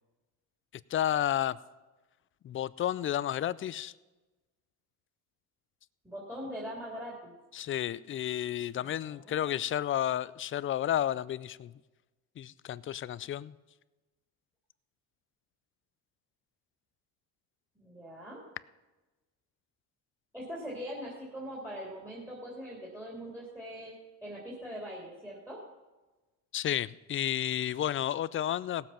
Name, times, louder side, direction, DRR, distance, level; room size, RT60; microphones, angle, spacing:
voice 1, 0.9-1.6 2.4-3.9 7.5-11.7 12.4-13.5 26.5-28.9, left 11 dB, 35° left, 19 dB, 0.4 m, -31 dB
voice 2, 6.0-7.3 8.7-9.4 17.7-18.5 20.3-25.6, equal, 5° right, -4 dB, 3.0 m, -42 dB
17.5 x 7.5 x 5.7 m, 1.2 s
supercardioid pair, 100°, 40 cm